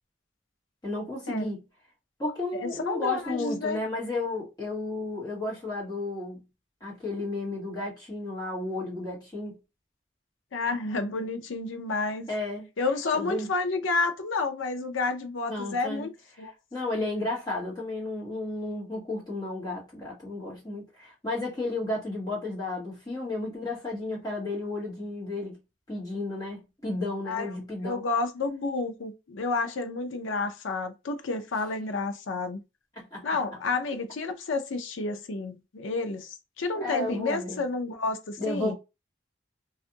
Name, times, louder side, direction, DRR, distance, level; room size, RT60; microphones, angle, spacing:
voice 1, 0.8-1.6 2.2-6.4 6.8-9.6 12.3-12.6 13.1-13.5 15.5-16.1 16.4-25.6 25.9-28.0 33.0-33.2 36.7-37.6 38.4-38.8, left 2 dB, 20° left, 1.3 m, -33 dB
voice 2, 2.6-3.8 10.5-12.3 12.8-16.1 16.4-16.5 27.3-27.5 27.8-32.6 33.2-38.8, left 3 dB, 85° left, 0.6 m, -30 dB
2.5 x 2.4 x 2.7 m
head